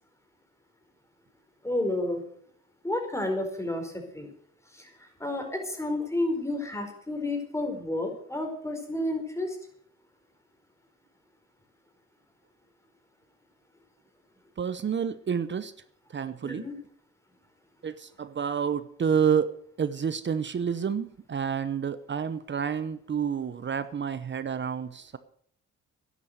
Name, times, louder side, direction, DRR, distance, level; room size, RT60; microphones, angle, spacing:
voice 1, 1.6-2.2 2.8-4.3 4.7-4.9 5.2-9.6 16.4-16.7, left 1 dB, 10° left, 4 dB, 4.7 m, -31 dB
voice 2, 14.6-15.7 16.1-16.7 17.8-19.5 19.8-25.2, right 7 dB, 40° right, 13 dB, 0.9 m, -29 dB
12.5 x 11.0 x 6.6 m, 0.63 s
cardioid pair, 90°, 30 cm